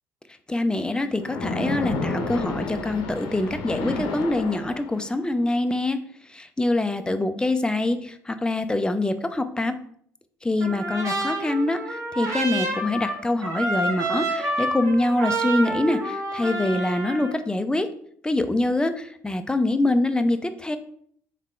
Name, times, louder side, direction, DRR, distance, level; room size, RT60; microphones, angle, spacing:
voice 1, 0.5-6.0 6.3-9.7 10.4-17.9 18.2-20.8, left 2 dB, 10° left, 9 dB, 0.5 m, -24 dB
Splash splatter, 1.2-5.2, left 2 dB, 70° left, 0.8 m, -30 dB
Trumpet, 10.6-17.3, right 2 dB, 40° right, 1.7 m, -28 dB
3.6 x 3.2 x 3.6 m, 0.63 s
hypercardioid pair, 55°, 8 cm